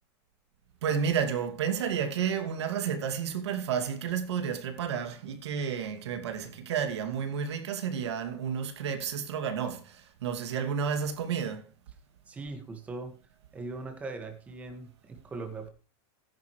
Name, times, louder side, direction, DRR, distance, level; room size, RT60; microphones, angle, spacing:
voice 1, 0.8-11.6, right 7 dB, 90° right, 2.4 m, -31 dB
voice 2, 12.3-13.2 13.5-15.7, right 3 dB, 10° right, 1.8 m, -40 dB
15.0 x 10.5 x 3.2 m
supercardioid pair, 180°, 14 cm